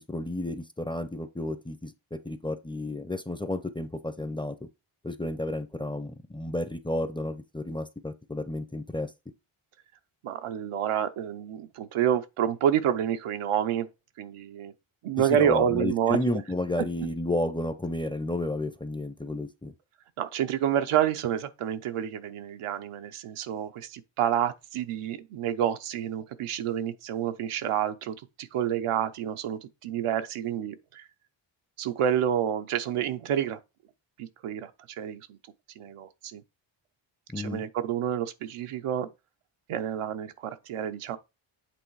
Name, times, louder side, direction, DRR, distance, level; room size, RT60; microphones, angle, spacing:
voice 1, 0.1-1.9 2.2-4.5 5.0-9.1 15.3-19.7 37.3-37.6, left 1 dB, 10° left, 0.5 m, -32 dB
voice 2, 10.2-13.9 14.2-14.7 15.0-16.4 20.2-31.0 31.8-33.6 34.2-35.4 35.8-36.4 37.4-39.1 39.7-41.2, right 9 dB, 85° right, 0.8 m, -28 dB
8.2 x 3.2 x 4.6 m
cardioid pair, 100°, 50 cm